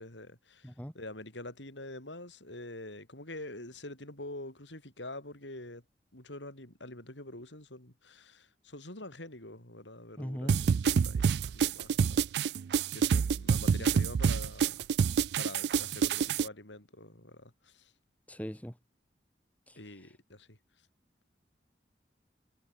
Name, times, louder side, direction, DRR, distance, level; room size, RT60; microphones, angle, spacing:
voice 1, 0.0-5.8 6.1-12.5 12.9-14.9 15.4-17.9 19.8-20.6, left 2 dB, 90° left, 7.9 m, -46 dB
voice 2, 10.2-10.6 18.3-18.7 19.7-19.8, equal, 10° left, 2.0 m, -39 dB
sound 1, 10.5-16.5, right 6 dB, 70° right, 0.3 m, -27 dB
head